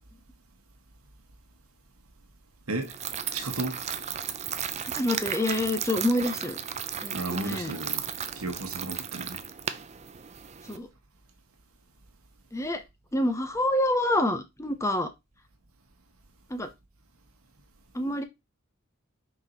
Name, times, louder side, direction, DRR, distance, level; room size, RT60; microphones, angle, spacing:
sound 1, 2.8-10.8, right 8 dB, 30° right, 0.5 m, -35 dB
voice 1, 3.3-3.8 7.1-8.0 8.4-9.4, right 2 dB, 85° right, 1.6 m, -33 dB
voice 2, 4.9-6.6 7.0-7.8 10.7-10.9 12.5-12.8 13.1-15.1 16.5-16.7 17.9-18.2, left 1 dB, 15° left, 0.8 m, -27 dB
5.4 x 4.8 x 4.1 m
head